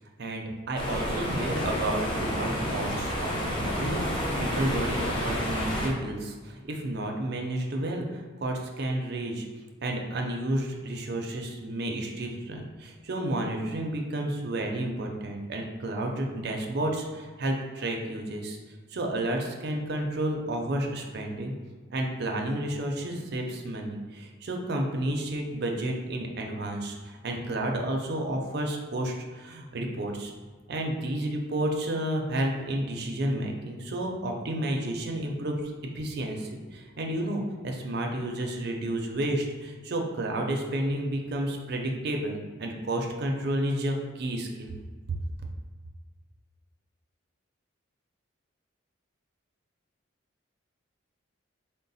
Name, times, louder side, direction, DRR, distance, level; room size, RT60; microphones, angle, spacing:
voice 1, 0.2-9.5 9.8-18.6 18.9-21.5 21.9-30.3 30.7-35.6 35.9-44.7, right 1 dB, 50° right, 1 dB, 0.5 m, -31 dB
sound 1, 0.8-5.9, equal, 25° left, 0.6 m, -30 dB
3.9 x 2.1 x 3.9 m, 1.4 s
head